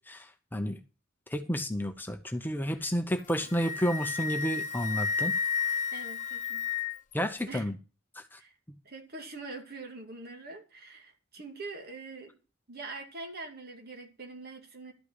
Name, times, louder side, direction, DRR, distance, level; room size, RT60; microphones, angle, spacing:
voice 1, 0.1-0.8 1.3-5.3 7.1-7.8 8.2-8.4, equal, 10° left, 0.7 m, -31 dB
Wind instrument woodwind instrument, 3.2-7.1, left 6 dB, 40° left, 0.9 m, -32 dB
voice 2, 5.9-6.6 7.5-7.6 8.4-8.6 8.8-12.4 12.7-14.9, right 3 dB, 50° right, 2.4 m, -43 dB
12.0 x 5.7 x 8.1 m
head